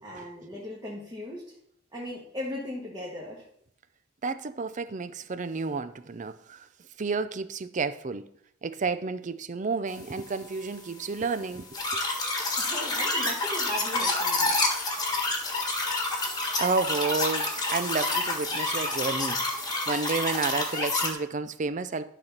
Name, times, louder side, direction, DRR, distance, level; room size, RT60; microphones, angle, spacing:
voice 1, 0.0-1.5 1.9-3.4 12.6-14.6, left 1 dB, 20° right, 1.6 m, -38 dB
voice 2, 4.2-6.6 7.0-8.3 8.6-11.7 16.6-22.1, right 4 dB, 40° right, 0.5 m, -31 dB
sound 1, 11.7-21.1, left 2 dB, 20° left, 1.5 m, -28 dB
12.0 x 4.1 x 5.9 m
head